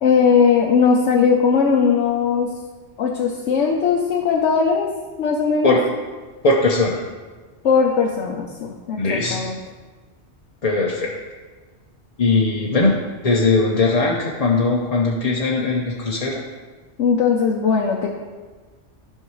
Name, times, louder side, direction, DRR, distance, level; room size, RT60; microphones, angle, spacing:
voice 1, 0.0-2.5 3.0-4.9 5.2-5.7 7.6-9.6 17.0-18.1, left 6 dB, 90° left, -1 dB, 1.1 m, -18 dB
voice 2, 6.4-7.0 9.0-9.4 10.6-11.1 12.2-12.9 13.2-16.4, left 3 dB, 35° left, -3 dB, 0.8 m, -19 dB
12.0 x 5.6 x 3.1 m, 1.3 s
omnidirectional pair, 1.2 m